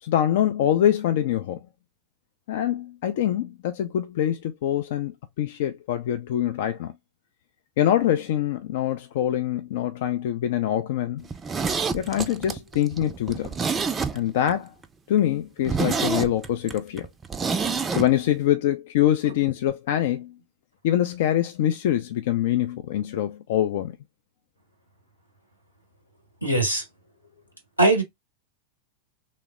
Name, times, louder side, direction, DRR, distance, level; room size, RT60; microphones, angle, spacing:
voice 1, 0.0-1.6 2.5-6.9 7.8-11.3 11.9-13.5 14.1-14.7 15.1-17.1 17.9-20.3 20.8-23.9, left 11 dB, 55° left, 0.3 m, -24 dB
Zipper (clothing), 11.2-14.5 14.8-14.9 15.3-15.4 15.6-18.1 18.3-18.4, right 5 dB, 20° right, 0.4 m, -27 dB
voice 2, 26.4-26.8 27.8-28.0, right 2 dB, 90° left, 1.1 m, -20 dB
3.2 x 2.0 x 3.5 m
figure-of-eight pair, 90°, 0 cm